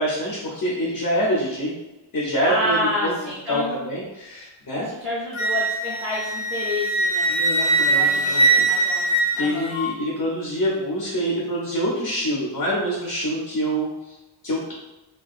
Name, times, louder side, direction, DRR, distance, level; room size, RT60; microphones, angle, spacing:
voice 1, 0.0-1.7 2.1-2.8 3.0-3.1 3.5-4.8 7.3-8.7 9.3-14.1 14.4-14.7, equal, 40° left, -5 dB, 0.6 m, -26 dB
voice 2, 2.4-3.8 4.8-7.3 7.8-9.7, left 1 dB, 5° right, -9 dB, 0.4 m, -29 dB
Wind instrument woodwind instrument, 5.3-9.9, right 2 dB, 85° left, 0.7 m, -21 dB
2.5 x 2.2 x 2.4 m, 1.0 s
wide cardioid pair, 170°, 48 cm